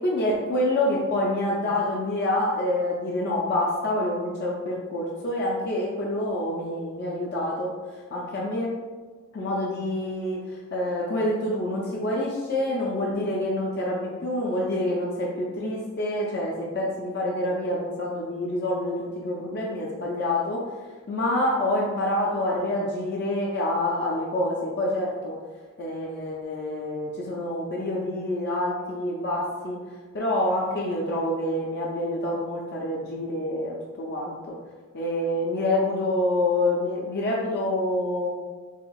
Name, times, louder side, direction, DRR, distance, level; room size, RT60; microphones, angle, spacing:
voice 1, 0.0-7.7 8.1-8.7 9.3-10.4 10.7-20.6 21.1-25.4 25.8-29.8 30.1-34.6 34.9-38.3, left 1 dB, 55° left, -4 dB, 0.5 m, -27 dB
4.3 x 2.9 x 2.3 m, 1.4 s
head